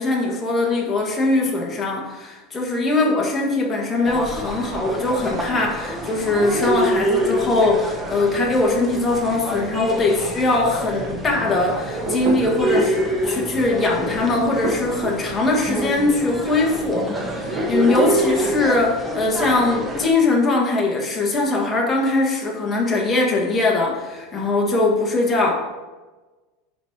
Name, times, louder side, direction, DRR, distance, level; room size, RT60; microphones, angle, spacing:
voice 1, 0.0-25.5, left 2 dB, 15° left, -1 dB, 1.4 m, -21 dB
sound 1, 4.1-20.1, right 1 dB, 10° right, 1.0 m, -27 dB
sound 2, 12.1-13.0 14.5-15.2 17.4-18.2, right 2 dB, 35° right, 1.1 m, -26 dB
9.4 x 4.0 x 4.6 m, 1.2 s
supercardioid pair, 160°, 0 cm